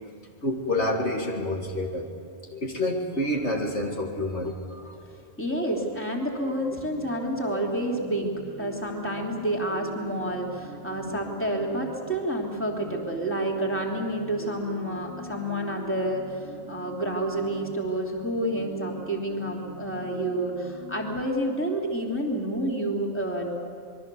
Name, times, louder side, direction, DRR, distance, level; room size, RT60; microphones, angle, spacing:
voice 1, 0.4-2.1 2.5-5.0 5.4-5.5 11.0-11.1, left 1 dB, 60° left, 0 dB, 2.5 m, -28 dB
voice 2, 5.4-23.5, right 1 dB, 10° left, -1 dB, 3.2 m, -29 dB
sound 1, 6.4-21.2, right 1 dB, 80° right, 1.8 m, -43 dB
26.5 x 22.0 x 7.0 m, 2.3 s
omnidirectional pair, 1.3 m